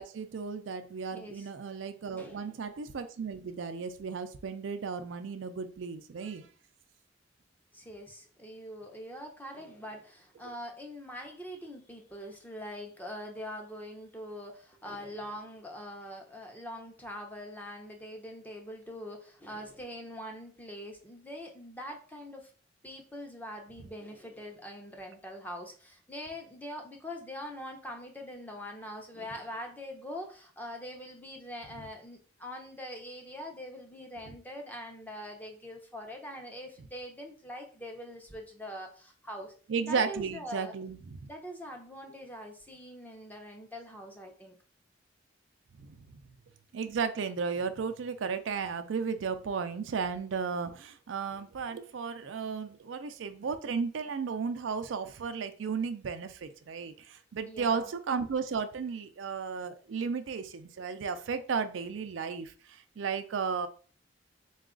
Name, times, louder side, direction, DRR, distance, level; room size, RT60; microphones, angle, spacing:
voice 1, 0.0-6.5 10.4-10.5 23.8-23.9 34.3-34.4 39.7-41.2 42.0-42.1 45.8-46.2 46.7-63.7, right 5 dB, 85° right, 9 dB, 0.4 m, -34 dB
voice 2, 1.1-1.5 2.2-2.6 7.7-22.5 22.8-39.5 39.8-40.7 41.3-44.6 57.4-57.9, equal, 10° left, 2 dB, 0.7 m, -43 dB
3.9 x 2.4 x 3.7 m, 0.40 s
head